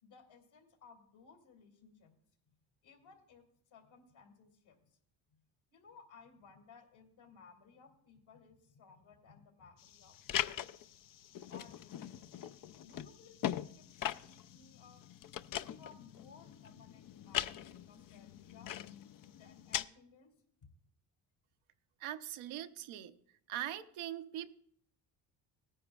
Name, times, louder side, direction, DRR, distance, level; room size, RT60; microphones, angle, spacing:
voice 1, 0.0-2.1 2.8-3.5 3.7-5.0 5.7-10.8 11.5-12.3 12.8-15.1 15.6-18.7 19.3-20.3 20.6-20.7, left 5 dB, 70° left, 3 dB, 2.6 m, -60 dB
sound 1, 9.8-19.8, left 11 dB, 45° left, 0.5 m, -41 dB
voice 2, 22.0-23.1 23.5-24.6, right 12 dB, 75° right, 10 dB, 0.8 m, -41 dB
17.5 x 10.0 x 2.4 m, 0.67 s
supercardioid pair, 65°, 49 cm